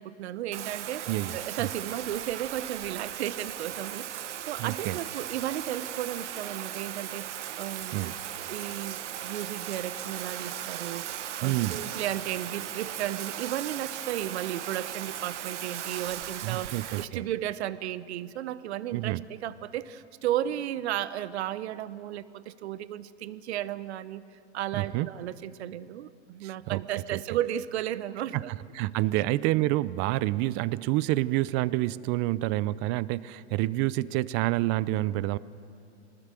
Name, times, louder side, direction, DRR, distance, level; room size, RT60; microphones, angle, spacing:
voice 1, 0.0-7.3 7.6-8.1 8.5-11.1 11.4-24.2 24.5-28.5 29.1-29.2, right 12 dB, 65° right, 15 dB, 1.1 m, -34 dB
Bathtub (filling or washing), 0.5-17.0, right 11 dB, 85° right, 1.0 m, -37 dB
voice 2, 1.1-1.7 4.6-5.0 7.9-8.1 11.4-11.8 16.4-17.2 18.9-19.2 24.7-25.1 26.4-26.8 27.1-27.2 28.3-35.4, right 17 dB, 35° right, 19 dB, 0.5 m, -28 dB
25.0 x 20.0 x 7.6 m, 2.4 s
hypercardioid pair, 130°, 35 cm